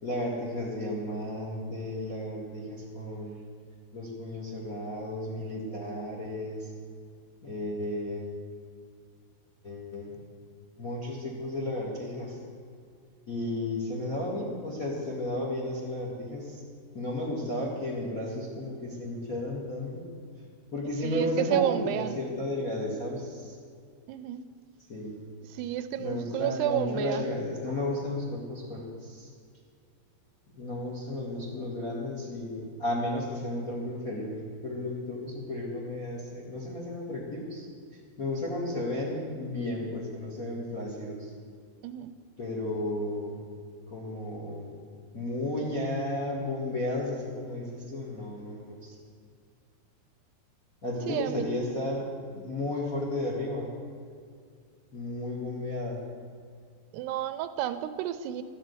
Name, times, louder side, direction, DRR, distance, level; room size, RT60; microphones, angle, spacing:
voice 1, 0.0-3.4 3.9-6.7 7.4-8.3 9.6-10.1 10.8-12.4 13.3-16.6 16.9-19.9 20.7-23.6 24.9-25.1 26.0-29.3 30.5-34.4 34.6-37.7 38.2-41.3 42.4-43.4 43.9-44.7 45.1-48.9 50.8-53.7 54.9-56.0, left 1 dB, 35° left, -1 dB, 1.4 m, -33 dB
voice 2, 21.0-22.2 24.1-24.4 25.4-27.2 41.8-42.1 42.8-42.9 51.1-51.5 56.9-58.4, right 12 dB, 85° right, 11 dB, 2.6 m, -31 dB
14.0 x 7.5 x 9.4 m, 2.2 s
omnidirectional pair, 4.9 m